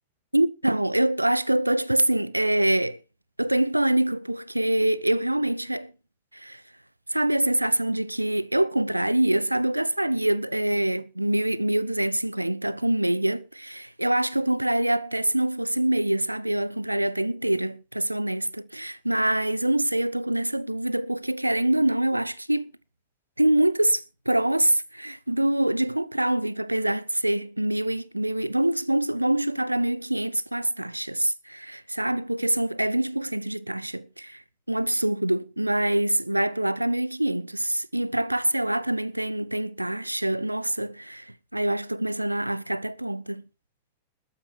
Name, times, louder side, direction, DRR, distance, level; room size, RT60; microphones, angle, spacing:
voice 1, 0.3-3.0 3.4-5.9 6.3-6.6 7.1-22.7 23.4-34.4 34.7-43.4, right 1 dB, 85° right, 0.6 m, -25 dB
20.5 x 8.9 x 4.5 m
figure-of-eight pair, 90°, 0 cm